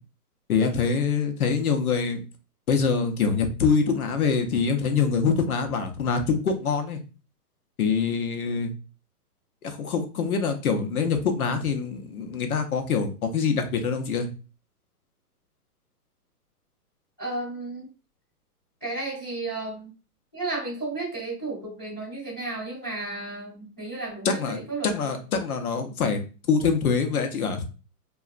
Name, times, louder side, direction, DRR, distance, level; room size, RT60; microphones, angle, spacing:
voice 1, 0.5-2.2 2.7-7.0 7.8-8.7 9.6-14.3 24.2-26.2 26.5-27.6, left 5 dB, 65° left, 6 dB, 0.7 m, -25 dB
voice 2, 17.2-17.9 18.8-19.9 20.3-25.2, right 2 dB, 15° left, -14 dB, 0.5 m, -33 dB
2.9 x 2.4 x 2.4 m, 0.33 s
hypercardioid pair, 175°, 47 cm